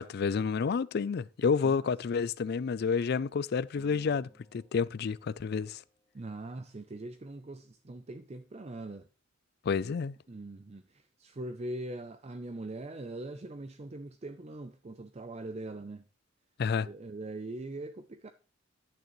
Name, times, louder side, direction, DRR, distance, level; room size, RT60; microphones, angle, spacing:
voice 1, 0.0-5.8 9.6-10.2 16.6-16.9, left 5 dB, 50° left, 0.4 m, -30 dB
sound 1, 3.8-6.4, equal, 20° left, 1.0 m, -61 dB
voice 2, 6.1-9.1 10.3-16.0 16.8-18.3, right 2 dB, 30° right, 0.5 m, -42 dB
11.0 x 8.9 x 3.0 m
head